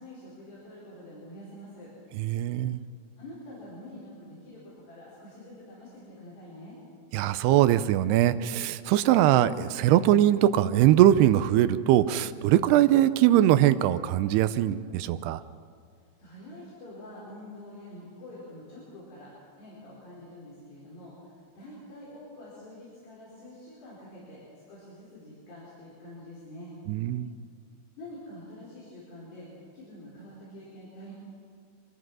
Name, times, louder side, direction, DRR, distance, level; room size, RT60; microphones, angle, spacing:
voice 1, 0.0-1.9 2.6-2.7 3.2-6.8 16.2-19.3 19.6-24.4 24.7-26.8 28.0-29.5 29.7-31.1, left 1 dB, 70° left, -7 dB, 6.9 m, -46 dB
voice 2, 2.2-2.8 7.1-15.4 26.9-27.3, right 12 dB, 80° right, 13 dB, 2.6 m, -22 dB
24.5 x 19.5 x 6.3 m, 2.3 s
omnidirectional pair, 5.0 m